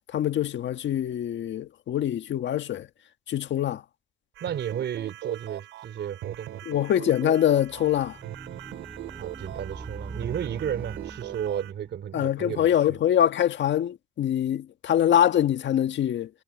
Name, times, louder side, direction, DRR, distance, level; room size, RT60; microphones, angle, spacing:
voice 1, 0.1-2.9 3.3-3.8 6.6-8.2 12.1-16.3, left 10 dB, 65° left, 1.6 m, -24 dB
voice 2, 4.4-6.6 9.1-13.0, right 9 dB, 65° right, 3.2 m, -33 dB
sound 1, 4.4-11.7, right 14 dB, 90° right, 3.7 m, -41 dB
sound 2, 7.5-12.2, right 4 dB, 25° right, 4.8 m, -42 dB
cardioid pair, 90°, 20 cm